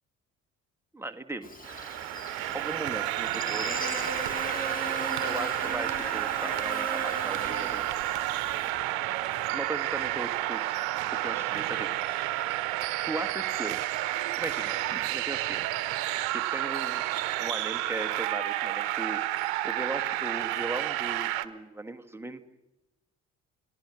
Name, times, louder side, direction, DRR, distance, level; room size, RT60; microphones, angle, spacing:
voice 1, 0.9-1.5 2.5-3.8 5.2-7.8 9.5-10.6 11.2-11.9 13.0-13.8 14.4-15.6 16.3-17.0 17.4-19.2 19.6-22.4, right 2 dB, 5° right, 6 dB, 1.7 m, -37 dB
Buzz, 1.4-8.7, equal, 20° left, 5.0 m, -38 dB
sound 1, 1.6-21.5, right 15 dB, 60° right, 1.1 m, -30 dB
30.0 x 19.5 x 6.3 m, 1.0 s
figure-of-eight pair, 50°, 39 cm